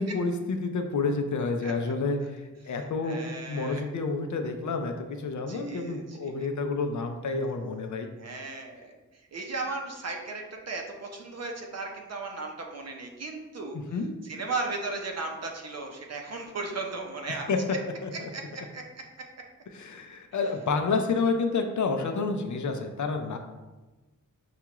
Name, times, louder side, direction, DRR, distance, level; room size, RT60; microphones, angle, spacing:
voice 1, 0.0-3.2 3.5-8.1 13.9-14.1 17.5-17.6 18.0-18.3 19.7-23.4, left 4 dB, 60° left, 5 dB, 0.5 m, -29 dB
voice 2, 1.6-1.9 2.6-3.8 5.5-6.5 8.2-17.8 18.1-19.0, right 3 dB, 50° right, 2 dB, 0.6 m, -36 dB
5.8 x 2.3 x 2.9 m, 1.2 s
wide cardioid pair, 140°, 33 cm